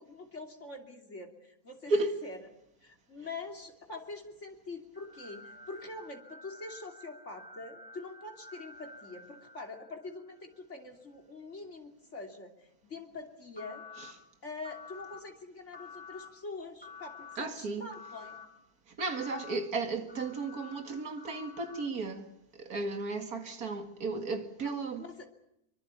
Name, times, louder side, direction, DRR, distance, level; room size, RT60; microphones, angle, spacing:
voice 1, 0.0-1.9 2.2-2.4 2.8-13.8 14.4-18.3 24.6-24.7 25.0-25.3, left 3 dB, 50° left, 3.2 m, -44 dB
sound 1, 4.9-10.3 13.6-14.1 14.6-15.2 15.7-16.3 16.8-17.4 17.9-18.5 19.0-19.5 20.1-21.9, left 4 dB, 5° left, 4.3 m, -50 dB
voice 2, 17.4-17.9 18.9-25.0, right 3 dB, 85° right, 2.5 m, -34 dB
25.0 x 23.5 x 7.0 m
omnidirectional pair, 1.5 m